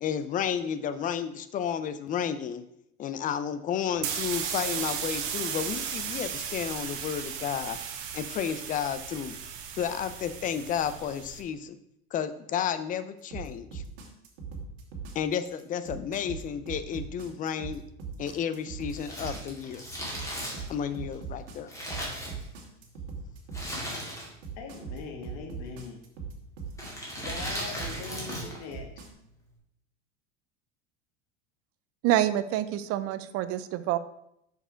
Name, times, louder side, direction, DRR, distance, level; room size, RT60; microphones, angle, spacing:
voice 1, 0.0-2.6 3.0-7.8 8.1-9.4 9.8-11.8 12.1-13.8 15.1-17.8 18.2-19.8 20.7-21.7, left 8 dB, 25° left, 12 dB, 0.5 m, -32 dB
sound 1, 3.9-11.4, right 8 dB, 65° right, 1.3 m, -35 dB
sound 2, 13.3-29.1, right 5 dB, 85° right, 2.2 m, -40 dB
Crumpling crinkling, 18.8-22.8 23.5-24.5 24.8-24.9 25.7-26.1 26.7-28.6 28.9-29.0, equal, 10° left, 2.3 m, -37 dB
voice 2, 24.5-26.0 27.1-29.1, left 4 dB, 55° left, 3 dB, 1.7 m, -41 dB
voice 3, 32.0-34.0, right 13 dB, 45° right, 13 dB, 0.5 m, -27 dB
6.6 x 5.1 x 5.0 m, 0.78 s
supercardioid pair, 140°, 32 cm